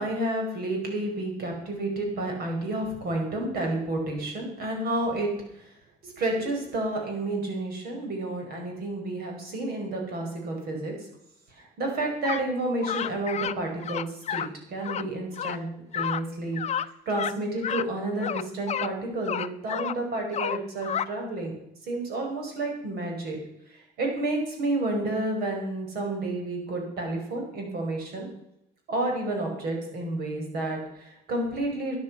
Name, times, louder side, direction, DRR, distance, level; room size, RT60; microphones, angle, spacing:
voice 1, 0.0-5.7 6.0-10.9 11.5-15.7 15.9-21.5 21.8-23.4 23.7-28.3 28.9-32.0, right 2 dB, 65° right, 1 dB, 5.1 m, -30 dB
sound 1, 12.2-12.5 12.8-13.6 13.8-14.5 14.8-15.1 15.4-15.6 15.9-16.2 16.6-16.9 17.1-17.3 17.6-17.9 18.2-18.9 19.3-20.0 20.3-21.1, left 9 dB, 40° left, 0.6 m, -30 dB
13.0 x 9.9 x 5.6 m, 0.82 s
cardioid pair, 110°, 17 cm